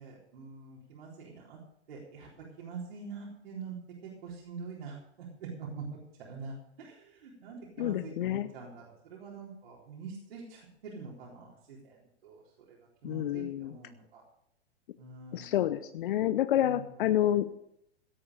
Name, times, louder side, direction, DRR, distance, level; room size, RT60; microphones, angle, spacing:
voice 1, 0.0-1.6 1.9-2.3 2.6-3.8 4.0-12.4 12.7-12.8 13.0-14.2 15.0-15.6 16.6-17.0, right 5 dB, 60° right, -5 dB, 4.1 m, -45 dB
voice 2, 7.8-8.5 13.0-13.8 15.3-17.5, left 12 dB, 50° left, 13 dB, 0.8 m, -29 dB
17.0 x 8.7 x 6.5 m, 0.76 s
figure-of-eight pair, 105°, 34 cm